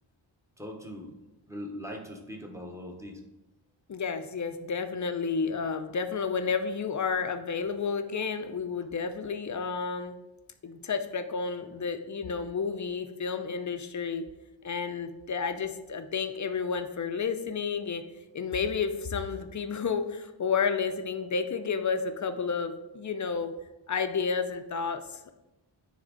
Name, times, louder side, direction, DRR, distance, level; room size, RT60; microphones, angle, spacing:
voice 1, 0.6-1.1 1.5-3.2, equal, 5° right, 2 dB, 0.9 m, -40 dB
voice 2, 3.9-10.2 10.6-14.3 14.6-18.0 18.3-23.5 23.9-25.3, left 5 dB, 40° left, 8 dB, 0.5 m, -31 dB
9.6 x 3.5 x 3.8 m, 1.0 s
wide cardioid pair, 145°, 48 cm